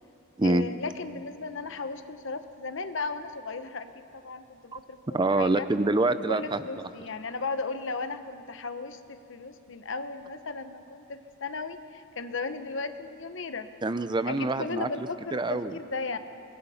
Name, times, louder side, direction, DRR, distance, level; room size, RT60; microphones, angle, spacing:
voice 1, 0.4-3.9 4.1-5.0 5.2-5.7 6.3-13.7 14.2-16.2, left 4 dB, 65° left, 9 dB, 1.0 m, -35 dB
voice 2, 5.1-6.6 13.8-15.7, right 2 dB, 20° right, 12 dB, 0.5 m, -26 dB
25.0 x 20.0 x 5.7 m, 2.7 s
head